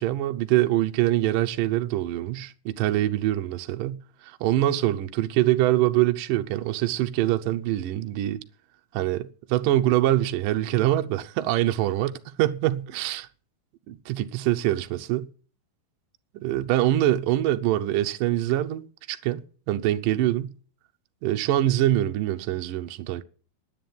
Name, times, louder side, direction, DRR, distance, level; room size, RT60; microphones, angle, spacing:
voice 1, 0.0-8.4 8.9-12.1 12.4-13.3 13.9-15.3 16.3-20.5 21.2-23.2, right 14 dB, 75° right, 2.2 m, -24 dB
10.0 x 8.8 x 9.4 m
omnidirectional pair, 4.5 m